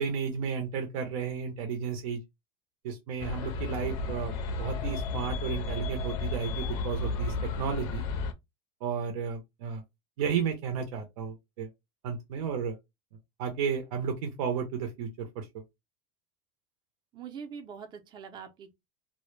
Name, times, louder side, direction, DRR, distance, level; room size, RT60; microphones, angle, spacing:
voice 1, 0.0-2.2 2.8-4.3 4.6-8.0 8.8-9.8 10.2-11.7 12.0-12.8 13.4-15.5, right 6 dB, 80° right, 0.6 m, -33 dB
sound 1, 3.2-8.3, left 3 dB, 65° left, 0.5 m, -33 dB
voice 2, 17.1-18.7, right 6 dB, 25° right, 0.5 m, -43 dB
2.1 x 2.1 x 3.0 m
supercardioid pair, 140°, 18 cm